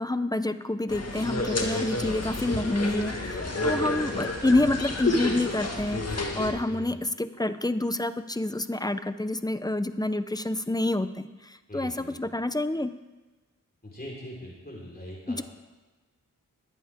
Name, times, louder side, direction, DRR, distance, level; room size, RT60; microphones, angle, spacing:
voice 1, 0.0-12.9 15.3-15.4, left 2 dB, 10° left, 12 dB, 0.8 m, -28 dB
sound 1, 0.9-6.5, left 2 dB, 45° left, 1.9 m, -30 dB
voice 2, 2.0-2.3 3.7-4.0 6.7-7.0 11.7-12.4 13.8-15.4, equal, 25° left, -5 dB, 4.5 m, -42 dB
21.5 x 8.5 x 3.7 m, 1.2 s
cardioid pair, 40°, 34 cm